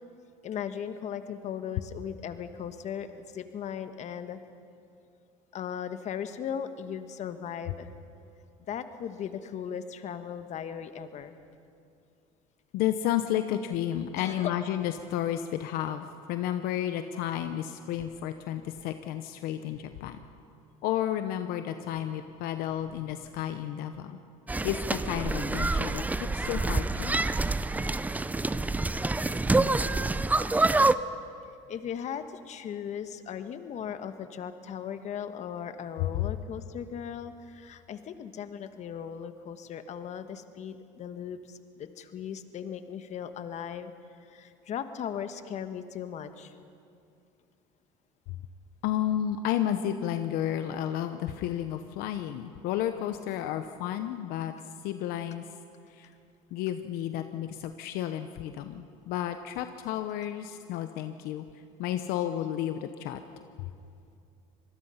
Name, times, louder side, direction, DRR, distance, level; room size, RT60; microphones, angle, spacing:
voice 1, 0.4-4.4 5.5-7.9 8.7-11.3 14.2-14.5 31.5-43.9 44.2-46.6, left 8 dB, 45° left, 9 dB, 1.4 m, -38 dB
voice 2, 12.7-20.2 20.8-24.2 24.6-27.2 36.0-36.3 48.8-54.5 54.8-55.4 55.9-56.1 56.5-61.4 61.8-63.2 63.6-63.7, left 11 dB, 70° left, 9 dB, 1.0 m, -32 dB
sound 1, 24.5-30.9, right 2 dB, 10° right, 0.6 m, -27 dB
25.5 x 20.0 x 5.8 m, 2.5 s
supercardioid pair, 105°, 16 cm